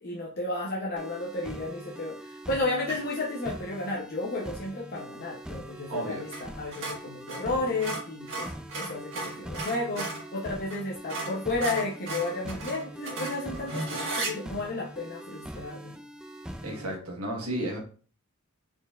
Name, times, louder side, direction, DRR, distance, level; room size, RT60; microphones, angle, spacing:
voice 1, 0.0-16.0, left 2 dB, 45° left, -4 dB, 0.7 m, -33 dB
sound 1, 1.0-17.0, right 1 dB, 5° right, 0.3 m, -43 dB
sound 2, 2.8-3.2 6.3-6.5 6.7-10.3 10.7-10.8 11.1-14.3, right 2 dB, 60° right, 1.5 m, -35 dB
voice 2, 5.9-6.3 16.6-17.8, right 1 dB, 90° right, 0 dB, 1.3 m, -33 dB
4.3 x 4.2 x 2.4 m, 0.41 s
head